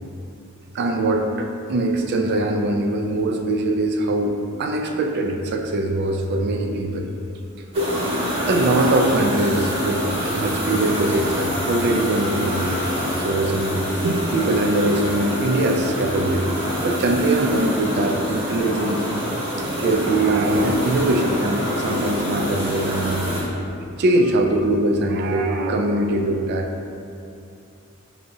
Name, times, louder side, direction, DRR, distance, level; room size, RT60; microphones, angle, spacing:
voice 1, 0.7-7.1 7.8-8.0 8.5-12.7 13.2-16.6 16.8-19.0 19.8-23.3 24.0-26.7, right 2 dB, 50° right, 4 dB, 0.3 m, -22 dB
sound 1, 7.7-23.4, equal, 30° right, 1.0 m, -26 dB
4.6 x 2.7 x 2.6 m, 2.5 s
head